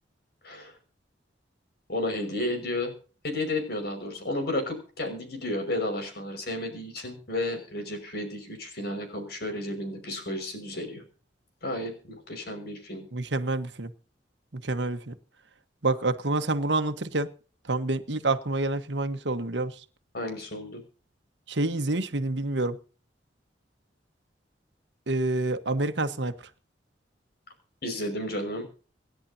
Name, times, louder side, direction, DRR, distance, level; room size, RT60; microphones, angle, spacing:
voice 1, 1.9-3.0 3.2-11.0 11.6-13.1 20.1-20.8 27.8-28.7, left 1 dB, 60° left, 5.7 m, -32 dB
voice 2, 13.1-13.9 14.5-15.1 15.8-17.3 17.7-19.7 21.5-22.8 25.1-26.3, right 2 dB, 70° right, 1.4 m, -27 dB
27.0 x 10.5 x 2.8 m
head